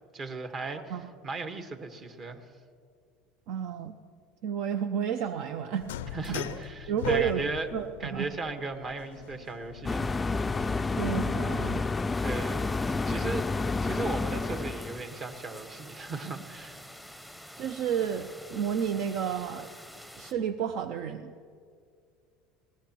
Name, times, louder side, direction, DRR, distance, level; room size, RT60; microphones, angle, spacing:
voice 1, 0.1-2.4 6.1-7.7 8.0-10.1 12.2-13.5 13.8-16.8, right 3 dB, 40° right, 6 dB, 1.4 m, -36 dB
voice 2, 3.5-4.0 4.4-6.6 6.9-8.3 10.9-11.8 17.6-19.7 20.2-21.3, right 8 dB, 65° right, 9 dB, 0.5 m, -31 dB
sound 1, 5.8-11.9, left 11 dB, 85° left, 0.4 m, -41 dB
sound 2, 9.9-15.0, left 3 dB, 20° left, 0.3 m, -29 dB
sound 3, 12.1-20.3, equal, 5° right, 0.9 m, -47 dB
21.0 x 18.0 x 3.0 m, 2.2 s
hypercardioid pair, 90°, 0 cm